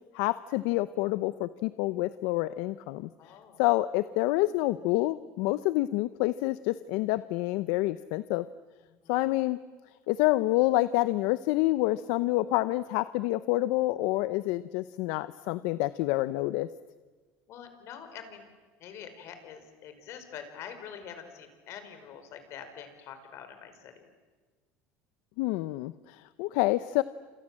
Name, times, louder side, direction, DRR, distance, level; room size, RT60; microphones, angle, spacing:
voice 1, 0.1-3.1 3.6-8.4 9.1-9.6 10.1-16.7 25.4-27.0, left 18 dB, 75° left, 14 dB, 0.8 m, -28 dB
voice 2, 3.2-3.6 8.9-9.3 17.5-18.5 18.8-24.1, left 8 dB, 55° left, 8 dB, 5.1 m, -45 dB
28.5 x 27.5 x 7.6 m, 1.4 s
supercardioid pair, 115°, 6 cm